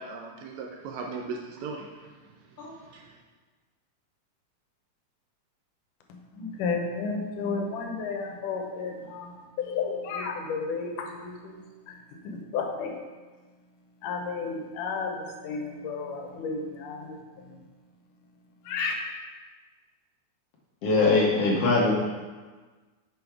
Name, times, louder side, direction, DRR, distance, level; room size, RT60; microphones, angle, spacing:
voice 1, 0.0-1.9 2.9-3.1, right 4 dB, 75° right, 1 dB, 1.7 m, -37 dB
voice 2, 6.4-11.6 11.9-12.0 12.2-13.0 14.0-17.4 18.7-19.0, left 4 dB, 85° left, 2 dB, 2.4 m, -32 dB
voice 3, 20.8-21.9, left 3 dB, 65° left, -3 dB, 1.8 m, -22 dB
6.5 x 5.4 x 4.6 m, 1.3 s
omnidirectional pair, 3.6 m